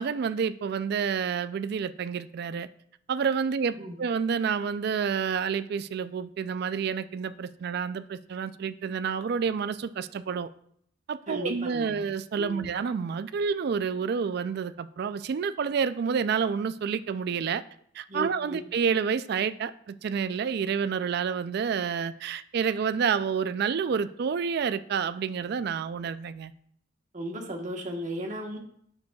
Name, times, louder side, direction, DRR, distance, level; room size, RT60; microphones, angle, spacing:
voice 1, 0.0-2.7 3.1-10.5 11.1-17.6 18.0-26.5, right 6 dB, 55° right, 0.3 m, -29 dB
voice 2, 11.3-12.0 12.3-12.7 18.1-18.6 27.1-28.6, equal, 40° right, 1.1 m, -35 dB
9.2 x 6.7 x 2.3 m
head